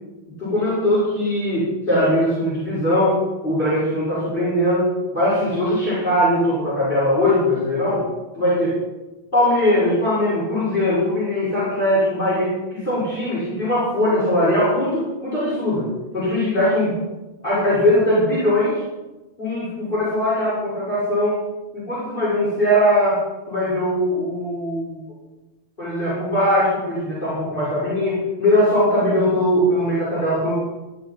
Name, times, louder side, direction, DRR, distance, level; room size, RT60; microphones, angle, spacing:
voice 1, 0.4-3.2 3.4-8.0 8.3-8.7 9.3-15.9 16.1-16.9 17.4-18.8 19.4-21.4 21.7-23.2 23.5-25.0 25.8-30.5, left 1 dB, 40° left, -10 dB, 6.7 m, -20 dB
16.5 x 11.5 x 4.7 m, 1.1 s
omnidirectional pair, 1.3 m